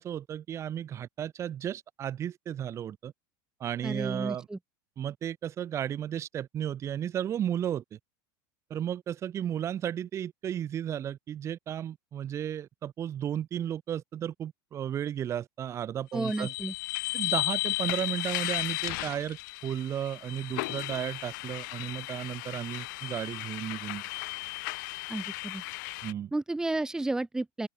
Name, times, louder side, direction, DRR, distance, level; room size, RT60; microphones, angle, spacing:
voice 1, 0.0-3.1 3.6-4.5 5.0-8.0 8.7-16.5 17.1-24.0 26.0-26.3, right 10 dB, 25° right, 7.6 m, -34 dB
voice 2, 3.8-4.6 16.1-16.7 25.1-25.6 26.3-27.7, right 2 dB, 5° right, 5.4 m, -32 dB
sound 1, 16.2-26.1, left 24 dB, 65° left, 7.1 m, -35 dB
open air
supercardioid pair, 160°, 11 cm